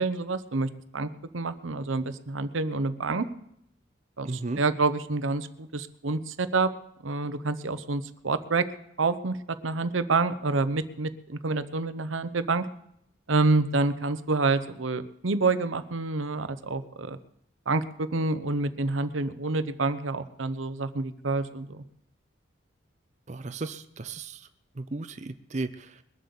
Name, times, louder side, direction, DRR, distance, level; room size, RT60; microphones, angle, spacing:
voice 1, 0.0-3.3 4.2-4.3 4.6-6.7 7.0-8.7 9.0-9.4 9.6-12.7 13.3-17.2 17.7-21.8, right 3 dB, 85° right, 12 dB, 0.9 m, -28 dB
voice 2, 4.2-4.6 23.3-24.5 24.8-26.0, right 3 dB, 35° right, 9 dB, 0.6 m, -35 dB
21.5 x 7.6 x 7.1 m, 0.75 s
head